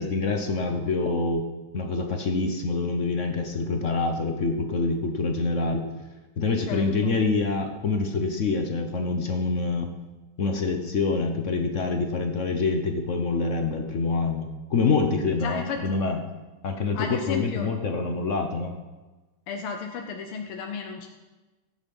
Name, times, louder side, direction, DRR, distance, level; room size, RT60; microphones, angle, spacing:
voice 1, 0.0-1.4 1.7-5.9 6.4-9.9 10.4-16.2 16.6-18.7, left 3 dB, 50° left, 5 dB, 0.9 m, -26 dB
voice 2, 6.7-7.2 15.4-16.0 16.9-17.7 19.5-21.1, left 6 dB, 80° left, 3 dB, 1.8 m, -33 dB
16.5 x 9.1 x 5.4 m, 1.2 s
omnidirectional pair, 2.4 m